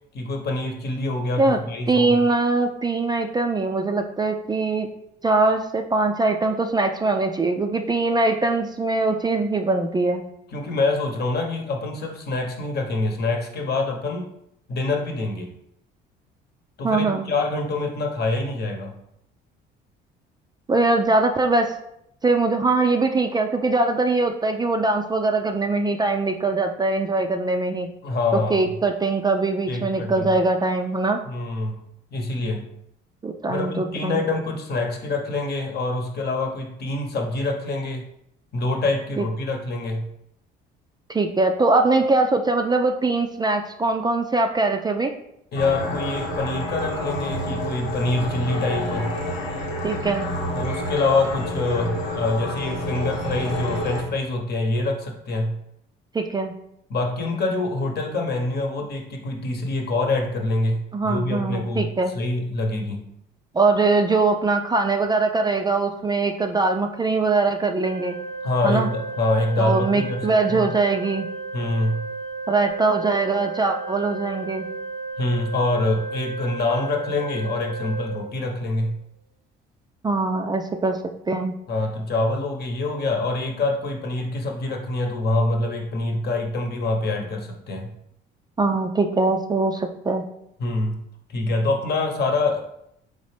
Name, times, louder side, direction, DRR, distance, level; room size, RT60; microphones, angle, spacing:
voice 1, 0.1-2.3 10.5-14.3 14.7-15.5 16.8-18.9 28.0-28.7 29.7-30.3 31.3-31.7 32.1-32.7 33.5-38.1 38.5-40.1 45.5-49.2 50.5-55.6 56.9-61.9 62.1-63.0 68.4-70.7 71.5-72.0 75.2-79.0 81.7-87.9 90.6-91.0 91.3-92.6, left 2 dB, 50° left, 2 dB, 1.0 m, -25 dB
voice 2, 1.9-4.9 5.2-10.2 16.8-17.2 20.7-21.7 22.2-27.9 28.3-31.2 33.2-34.3 39.2-39.3 41.1-45.1 49.8-50.3 56.1-56.5 60.9-62.1 63.5-68.2 68.6-68.9 69.6-71.3 72.5-74.7 80.0-81.0 81.3-81.5 88.6-90.2, right 3 dB, 20° right, 4 dB, 0.4 m, -22 dB
sound 1, 45.6-54.0, equal, 80° left, 1.0 m, -29 dB
Organ, 67.8-78.8, right 3 dB, 85° right, 0.7 m, -34 dB
4.0 x 3.2 x 3.3 m, 0.75 s
supercardioid pair, 75°, 21 cm